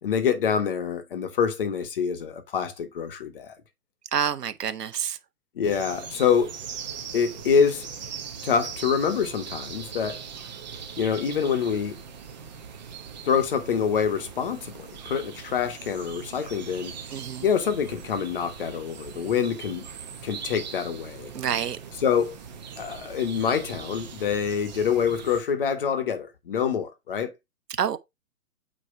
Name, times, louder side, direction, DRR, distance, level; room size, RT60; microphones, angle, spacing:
voice 1, 0.0-3.5 5.6-6.6 7.1-7.9 8.4-10.2 11.0-12.0 13.2-16.9 17.4-19.9 20.2-21.3 22.0-22.4 22.8-27.3, left 7 dB, 35° left, 1.2 m, -26 dB
voice 2, 4.1-5.2 17.1-17.4 21.3-21.8 27.8-28.0, right 8 dB, 80° right, 1.2 m, -27 dB
sound 1, 5.6-25.4, right 6 dB, 25° right, 1.1 m, -40 dB
8.7 x 3.2 x 4.5 m
hypercardioid pair, 170°, 47 cm